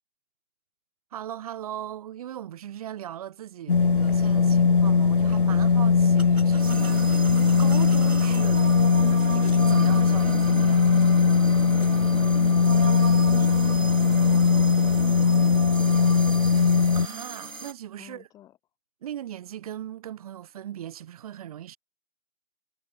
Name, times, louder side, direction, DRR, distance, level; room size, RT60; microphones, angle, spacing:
voice 1, 1.1-8.8 9.3-10.8 16.9-18.3 19.0-21.8, right 11 dB, 25° right, 7.7 m, -39 dB
sound 1, 3.7-17.1, left 5 dB, 35° left, 1.1 m, -20 dB
sound 2, 4.1-4.2 5.3-5.4 6.2-8.5 9.4-9.7, right 1 dB, 90° right, 6.4 m, -46 dB
sound 3, 6.6-17.7, right 3 dB, 65° right, 4.8 m, -35 dB
voice 2, 11.9-16.2 18.0-18.6, left 13 dB, 10° left, 4.5 m, -51 dB
figure-of-eight pair, 155°, 43 cm